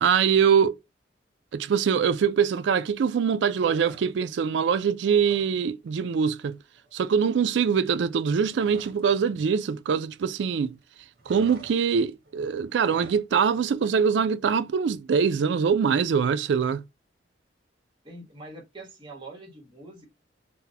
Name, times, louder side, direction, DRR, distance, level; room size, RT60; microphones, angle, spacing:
voice 1, 0.0-0.8 1.5-6.6 6.9-10.8 11.3-16.8, right 6 dB, 75° right, 0.3 m, -23 dB
sound 1, 3.6-4.4 4.7-5.6 5.9-6.1 6.4-9.1 9.4-10.5 10.7-13.3, right 3 dB, 55° right, 0.9 m, -50 dB
voice 2, 18.0-20.1, right 2 dB, 25° right, 1.3 m, -44 dB
4.0 x 2.1 x 2.7 m
head